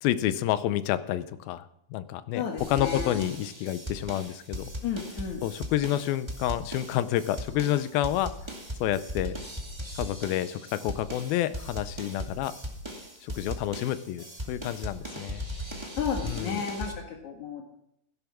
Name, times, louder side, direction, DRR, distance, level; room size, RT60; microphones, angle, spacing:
voice 1, 0.0-4.7 5.4-8.3 8.8-9.3 10.0-12.5 13.2-15.4 16.2-16.6, left 12 dB, 80° left, 13 dB, 2.4 m, -29 dB
voice 2, 2.3-3.2 4.8-5.4 15.9-17.7, left 7 dB, 60° left, 1 dB, 2.6 m, -33 dB
sound 1, 2.6-16.9, equal, 10° right, 1.2 m, -38 dB
16.0 x 10.5 x 6.1 m, 0.77 s
omnidirectional pair, 4.4 m